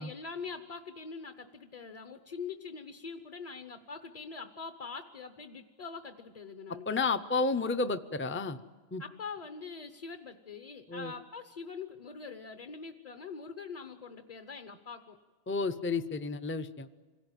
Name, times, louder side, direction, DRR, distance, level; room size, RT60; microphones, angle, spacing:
voice 1, 0.0-6.9 9.0-15.2, left 5 dB, 40° left, 7 dB, 1.0 m, -43 dB
voice 2, 6.9-8.6 8.9-9.0 10.9-11.1 15.5-16.9, left 4 dB, 15° left, 9 dB, 0.6 m, -31 dB
26.5 x 17.5 x 9.1 m, 1.4 s
omnidirectional pair, 1.1 m